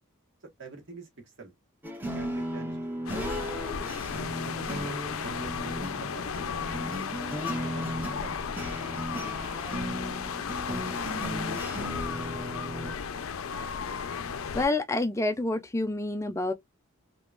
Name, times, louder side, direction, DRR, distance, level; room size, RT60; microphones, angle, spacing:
voice 1, 0.6-1.5 2.1-2.8 3.5-3.8 4.4-6.4 7.5-8.4, right 4 dB, 60° right, 1.5 m, -45 dB
sound 1, 1.8-13.0, equal, 10° right, 0.8 m, -36 dB
sound 2, 3.1-14.7, left 6 dB, 75° left, 0.5 m, -34 dB
voice 2, 14.5-16.5, left 2 dB, 15° left, 0.3 m, -28 dB
3.6 x 2.9 x 2.4 m
head